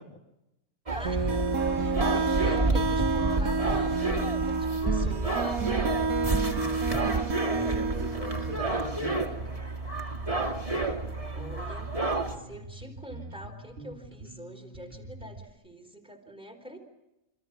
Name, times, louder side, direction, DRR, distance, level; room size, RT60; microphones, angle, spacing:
voice 1, 0.9-4.0 4.5-5.5 11.3-11.9 12.3-16.8, equal, 5° right, 4 dB, 4.5 m, -45 dB
sound 1, 0.9-12.3, right 2 dB, 25° right, 2.6 m, -30 dB
sound 2, 1.0-8.6, right 4 dB, 85° right, 1.7 m, -29 dB
Bass guitar, 5.9-15.5, right 2 dB, 45° right, 2.1 m, -45 dB
voice 2, 7.5-9.5, equal, 25° left, -1 dB, 3.0 m, -39 dB
29.0 x 26.0 x 6.2 m, 0.91 s
omnidirectional pair, 1.5 m